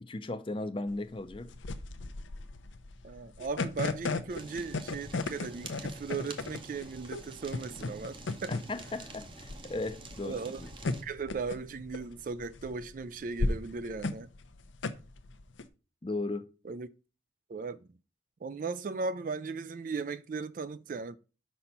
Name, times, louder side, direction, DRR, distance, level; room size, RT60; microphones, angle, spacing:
voice 1, 0.0-1.5 8.5-10.7 16.0-16.4, left 2 dB, 25° left, 0.5 m, -36 dB
sound 1, 0.9-15.7, left 3 dB, 80° left, 0.6 m, -36 dB
voice 2, 3.0-8.6 10.2-10.6 10.9-14.3 16.6-16.9 17.5-17.9 18.4-21.2, right 4 dB, 45° right, 0.3 m, -37 dB
Fire, 4.3-11.0, right 3 dB, 25° right, 0.8 m, -48 dB
5.3 x 4.2 x 5.8 m
head